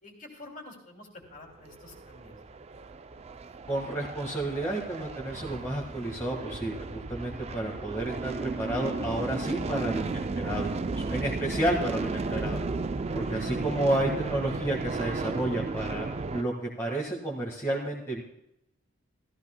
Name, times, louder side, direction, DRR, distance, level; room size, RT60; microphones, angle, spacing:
voice 1, 0.0-2.3, left 2 dB, 40° left, 1 dB, 2.5 m, -48 dB
sound 1, 1.7-16.4, right 3 dB, 30° right, 0.4 m, -34 dB
voice 2, 3.7-12.6 13.1-18.2, right 1 dB, 15° left, -4 dB, 1.6 m, -31 dB
15.0 x 14.5 x 2.2 m, 0.82 s
head